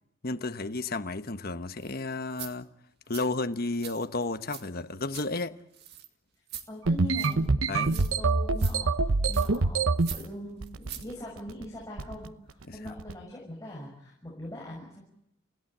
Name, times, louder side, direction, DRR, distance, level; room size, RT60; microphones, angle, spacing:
voice 1, 0.2-2.7 3.1-5.6 7.7-8.0 12.7-12.9, left 3 dB, 50° left, 1.1 m, -32 dB
sound 1, 1.8-1.9 2.3-2.5 3.1-3.3 3.8-4.6 4.9-5.3 5.7-6.1 6.5-6.7 7.2-7.5 7.9-8.3 8.6-8.8 9.2-9.6 10.0-10.3 10.6-11.1 11.4-11.5, right 10 dB, 55° right, 2.0 m, -42 dB
voice 2, 6.7-7.5 7.9-15.0, left 1 dB, 15° left, 6.3 m, -42 dB
sound 2, 6.9-10.1 10.6-11.1 11.4-11.6 12.0-12.3 12.9-13.1, right 3 dB, 85° right, 0.9 m, -25 dB
29.5 x 17.0 x 8.8 m
head